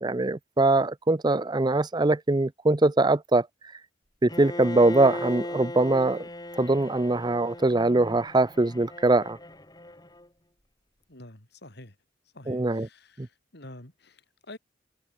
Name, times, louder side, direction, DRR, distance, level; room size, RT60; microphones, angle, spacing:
voice 1, 0.0-3.5 4.2-6.3 6.5-9.4 12.5-12.9 13.2-13.3, right 2 dB, 20° right, 0.6 m, -22 dB
Bowed string instrument, 4.3-10.3, left 1 dB, 20° left, 7.2 m, -38 dB
voice 2, 11.1-12.0 12.3-14.6, left 1 dB, 60° left, 3.7 m, -47 dB
open air
head